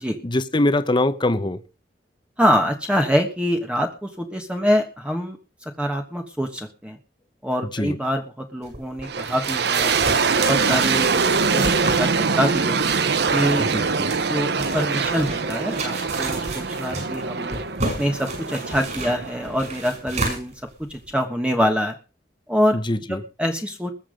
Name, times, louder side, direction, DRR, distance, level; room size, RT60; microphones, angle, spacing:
voice 1, 0.2-1.6 7.7-8.0 13.6-14.1 22.7-23.2, left 1 dB, 25° left, 0.9 m, -23 dB
voice 2, 2.4-7.0 7.4-10.0 10.3-11.1 11.5-11.6 12.0-12.8 13.3-13.6 14.3-17.6 18.0-20.5 20.8-21.9 22.5-22.8 23.1-23.9, equal, 5° right, 1.3 m, -25 dB
sound 1, 8.6-21.1, right 2 dB, 45° right, 7.1 m, -32 dB
sound 2, 9.0-20.0, right 5 dB, 70° right, 0.9 m, -23 dB
20.5 x 7.2 x 5.1 m
head